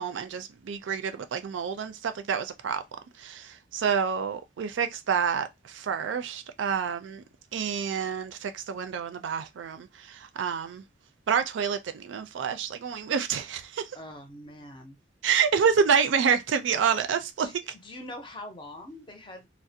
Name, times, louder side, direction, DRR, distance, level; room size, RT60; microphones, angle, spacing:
voice 1, 0.0-2.8 3.2-7.2 7.5-10.8 11.3-13.9 15.2-17.5, right 6 dB, 75° right, 0.4 m, -28 dB
voice 2, 13.9-15.0 17.1-17.5 17.8-19.5, left 1 dB, 25° left, 0.5 m, -43 dB
2.4 x 2.0 x 2.6 m
head